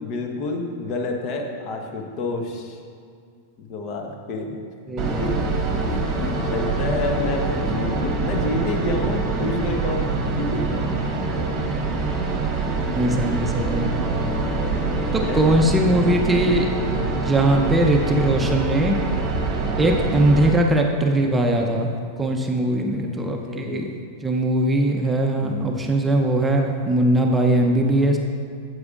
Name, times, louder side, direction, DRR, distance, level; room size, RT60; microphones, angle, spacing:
voice 1, 0.0-2.8 3.6-4.6 5.0-5.3 5.9-10.7 14.6-15.5 17.3-17.6 19.5-19.9 22.9-24.0 25.3-25.7, left 2 dB, 45° left, 2 dB, 1.1 m, -29 dB
voice 2, 4.9-5.2 12.9-13.9 15.1-16.7 17.1-19.0 19.8-21.9 22.2-23.8 24.2-28.2, right 1 dB, 15° right, 2 dB, 0.7 m, -20 dB
sound 1, 5.0-20.5, right 3 dB, 35° right, 1.1 m, -25 dB
9.4 x 8.0 x 2.5 m, 2.2 s
figure-of-eight pair, 95°, 0 cm